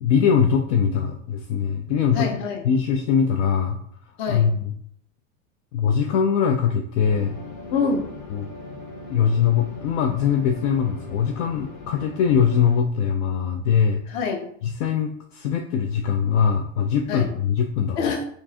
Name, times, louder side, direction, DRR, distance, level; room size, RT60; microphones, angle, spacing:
voice 1, 0.0-2.3 2.6-3.8 4.3-4.6 5.7-7.4 8.3-8.5 9.1-14.0 14.6-18.0, left 7 dB, 70° left, 3 dB, 0.5 m, -22 dB
voice 2, 2.1-2.7 4.2-4.5 7.7-8.1 14.1-14.5 17.1-17.3 17.9-18.2, left 5 dB, 50° left, 3 dB, 0.9 m, -25 dB
sound 1, 7.0-12.8, left 3 dB, 85° left, 1.0 m, -39 dB
4.4 x 2.5 x 2.8 m, 0.66 s
supercardioid pair, 125°, 39 cm